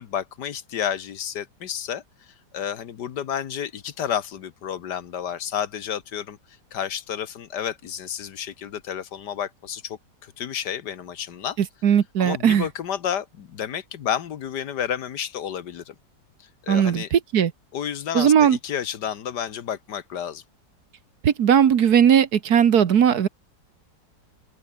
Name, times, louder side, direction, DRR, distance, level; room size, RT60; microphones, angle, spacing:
voice 1, 0.0-2.0 2.5-6.4 6.7-11.6 12.2-15.9 16.6-17.1 17.7-20.4, left 9 dB, 70° left, 1.7 m, -31 dB
voice 2, 11.8-12.7 16.7-17.5 18.1-18.6 21.2-23.3, right 8 dB, 60° right, 1.6 m, -18 dB
open air
omnidirectional pair, 1.9 m